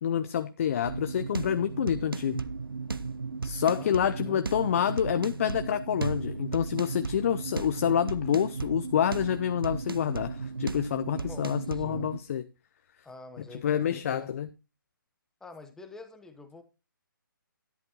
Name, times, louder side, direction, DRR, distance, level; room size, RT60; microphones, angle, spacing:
voice 1, 0.0-2.4 3.4-12.4 13.5-14.5, left 9 dB, 40° left, 0.6 m, -28 dB
sound 1, 0.8-12.2, right 4 dB, 85° right, 0.8 m, -35 dB
voice 2, 3.7-4.4 11.1-12.1 13.0-14.3 15.4-16.6, left 3 dB, 5° left, 0.9 m, -47 dB
12.0 x 10.5 x 2.9 m
figure-of-eight pair, 145°, 12 cm